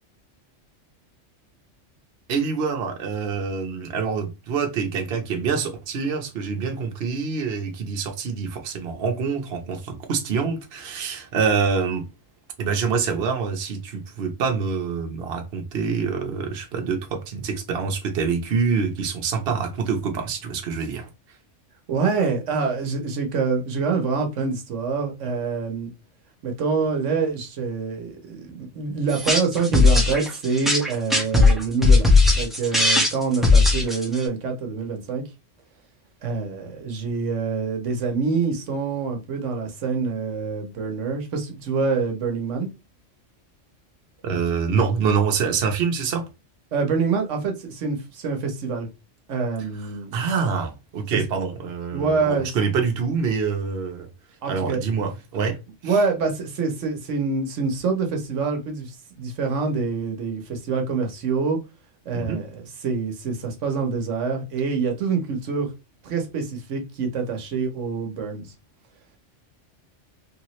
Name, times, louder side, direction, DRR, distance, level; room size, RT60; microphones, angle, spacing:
voice 1, 2.3-12.0 12.6-21.1 44.2-46.3 50.1-54.1 54.5-55.5 55.8-56.0 62.1-62.4, right 5 dB, 60° right, 0.9 m, -26 dB
voice 2, 21.9-25.9 26.4-32.1 32.4-35.2 36.2-42.7 46.7-48.9 49.3-50.1 51.1-51.2 51.9-52.5 54.4-54.8 55.8-61.6 62.0-65.7 66.0-68.5, right 4 dB, 80° right, 1.1 m, -26 dB
sound 1, 29.1-34.2, left 3 dB, ahead, 0.8 m, -17 dB
3.3 x 2.8 x 3.0 m
omnidirectional pair, 1.3 m